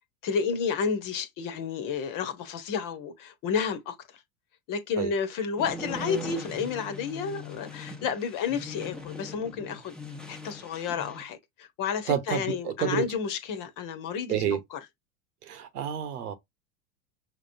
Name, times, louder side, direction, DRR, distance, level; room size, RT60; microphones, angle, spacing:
voice 1, 0.2-3.9 4.7-10.0 10.3-14.4 14.7-14.8, left 6 dB, 45° left, 1.2 m, -31 dB
sound 1, 5.6-11.3, left 1 dB, ahead, 1.0 m, -40 dB
voice 2, 12.1-13.0 14.3-14.6 15.5-16.3, right 10 dB, 80° right, 1.2 m, -29 dB
5.8 x 3.1 x 2.7 m
hypercardioid pair, 100°, 46 cm